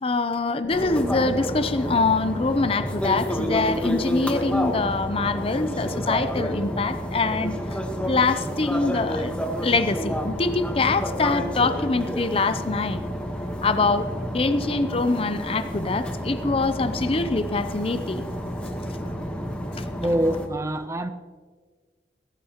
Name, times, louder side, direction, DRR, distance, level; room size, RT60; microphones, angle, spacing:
voice 1, 0.0-7.6 8.1-9.4 9.6-13.0 13.6-14.1 14.3-18.2, left 3 dB, 35° left, 0.6 m, -24 dB
sound 1, 0.7-20.5, equal, 5° left, 1.2 m, -30 dB
voice 2, 20.0-21.1, right 1 dB, 15° right, 0.6 m, -24 dB
16.0 x 14.5 x 3.0 m
head